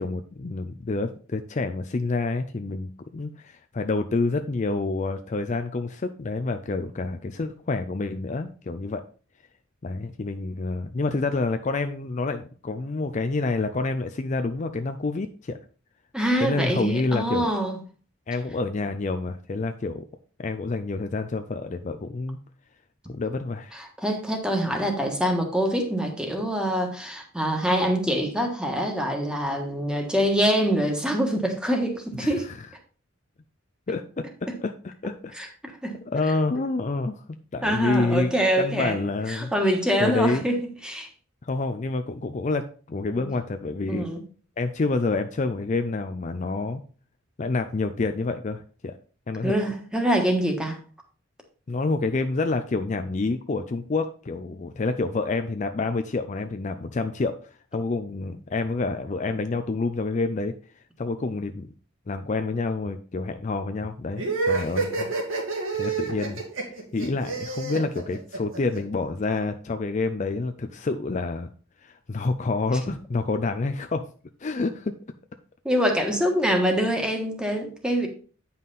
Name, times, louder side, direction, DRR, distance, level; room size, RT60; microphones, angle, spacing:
voice 1, 0.0-9.0 9.8-15.6 16.4-17.5 18.3-20.0 20.4-22.4 23.1-23.8 32.2-32.3 33.9-34.3 34.6-35.3 35.7-35.8 36.1-37.2 37.5-38.3 38.6-39.5 40.0-40.4 41.4-44.1 44.6-46.8 47.4-49.0 49.3-49.5 51.7-60.5 61.0-61.7 62.1-65.1 65.8-66.4 66.7-71.5 71.8-74.0 74.4-74.9, left 3 dB, 35° left, 8 dB, 0.4 m, -28 dB
voice 2, 16.1-17.8 23.7-32.5 34.5-34.6 35.3-35.5 35.8-35.9 37.6-39.0 39.3-41.1 43.2-43.3 43.9-44.2 49.4-50.8 75.6-78.1, equal, 5° right, 3 dB, 1.4 m, -25 dB
sound 1, 64.2-68.8, right 4 dB, 75° right, 2.6 m, -28 dB
9.2 x 5.6 x 4.0 m, 0.40 s
head